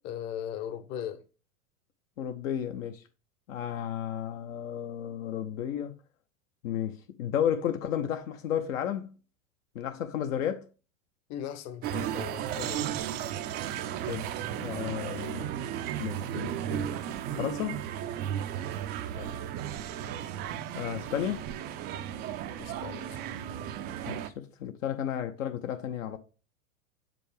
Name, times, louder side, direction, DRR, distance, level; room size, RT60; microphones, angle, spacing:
voice 1, 0.0-1.2 11.3-13.0 19.1-19.4 22.6-23.3, left 9 dB, 40° left, 0.9 m, -39 dB
voice 2, 2.2-3.0 3.5-5.9 6.6-9.1 9.7-10.6 14.1-14.3 14.6-15.5 16.0-16.9 17.4-17.8 20.7-21.4 24.1-26.2, left 9 dB, 70° left, 0.8 m, -33 dB
sound 1, 11.8-24.3, right 10 dB, 25° right, 0.4 m, -35 dB
6.6 x 5.1 x 3.4 m
hypercardioid pair, 105°, 41 cm